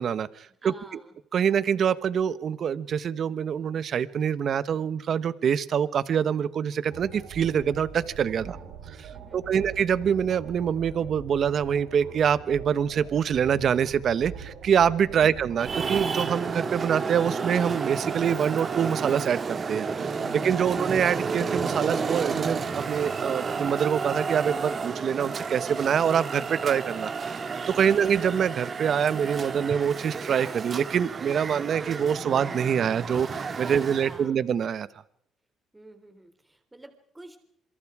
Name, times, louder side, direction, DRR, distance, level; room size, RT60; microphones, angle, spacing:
voice 1, 0.0-0.7 1.3-8.6 9.3-34.9, right 8 dB, 55° right, 16 dB, 1.1 m, -25 dB
voice 2, 0.6-1.1 8.4-8.7 9.1-9.7 15.1-15.4 33.6-34.4 35.7-37.4, right 2 dB, 10° right, 8 dB, 3.5 m, -49 dB
sound 1, 6.9-16.0, right 7 dB, 80° right, 3.8 m, -43 dB
Traffic noise roadway noise, 15.6-34.2, right 5 dB, 40° right, 2.3 m, -31 dB
27.5 x 23.5 x 4.9 m, 0.70 s
cardioid pair, 90°, 0 cm